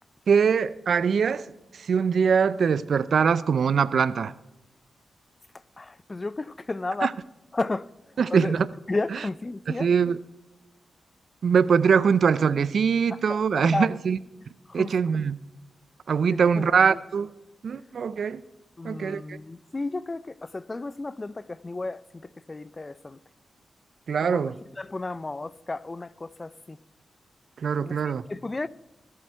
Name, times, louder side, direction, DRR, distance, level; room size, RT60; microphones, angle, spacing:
voice 1, 0.3-1.5 1.9-4.3 7.0-7.1 8.2-8.7 9.8-10.2 11.4-14.2 14.7-15.4 16.1-17.3 17.6-18.4 18.8-19.4 24.1-24.6 27.6-28.2, right 6 dB, 70° right, 0.4 m, -22 dB
voice 2, 5.8-7.2 7.5-7.9 8.3-8.5 8.9-9.9 13.1-13.9 14.7-14.9 16.3-17.0 18.8-23.2 24.2-24.5 24.8-26.8 27.8-28.7, left 2 dB, 30° left, 0.4 m, -33 dB
19.5 x 7.7 x 4.5 m
cardioid pair, 55°, 0 cm